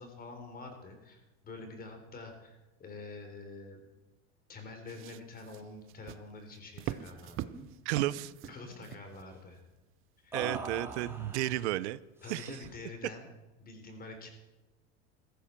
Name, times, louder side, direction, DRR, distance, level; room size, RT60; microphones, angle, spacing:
voice 1, 0.0-3.8 4.5-7.5 8.5-9.6 10.2-10.4 12.2-13.3 13.6-14.3, left 3 dB, 25° left, 5 dB, 3.7 m, -47 dB
sound 1, 4.9-9.6 10.4-11.0 11.6-11.7, right 14 dB, 40° right, 0.6 m, -43 dB
sound 2, 7.0-7.2 7.4-7.7 8.0-8.7 10.3-11.6 12.2-12.8, right 3 dB, 5° right, 2.6 m, -43 dB
voice 2, 7.8-8.3 10.3-12.0 12.3-12.6, right 15 dB, 90° right, 18 dB, 0.7 m, -32 dB
15.5 x 14.0 x 4.6 m, 1.1 s
supercardioid pair, 130°, 33 cm